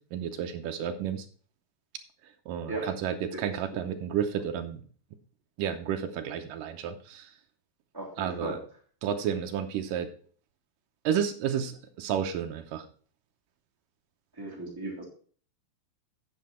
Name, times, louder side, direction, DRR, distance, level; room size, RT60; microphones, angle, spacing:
voice 1, 0.1-1.3 2.5-4.8 5.6-7.3 8.2-8.6 9.0-10.1 11.0-11.7 12.0-12.9, right 8 dB, 75° right, 7 dB, 2.1 m, -31 dB
voice 2, 7.9-8.6 14.4-15.0, right 2 dB, 5° right, -5 dB, 2.3 m, -36 dB
9.5 x 7.6 x 4.2 m, 0.44 s
omnidirectional pair, 4.6 m